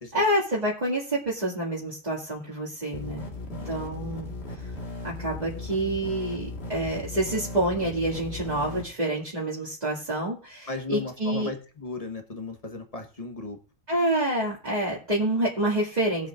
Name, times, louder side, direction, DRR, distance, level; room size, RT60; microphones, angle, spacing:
voice 1, 0.1-3.2 3.6-4.3 5.0-11.5 13.9-16.3, right 1 dB, 30° right, -6 dB, 2.4 m, -27 dB
sound 1, 2.9-8.8, left 2 dB, 50° left, 2.0 m, -37 dB
voice 2, 3.6-4.0 10.7-13.6, left 3 dB, 30° left, 4 dB, 1.3 m, -36 dB
20.0 x 7.4 x 2.5 m, 0.38 s
omnidirectional pair, 1.4 m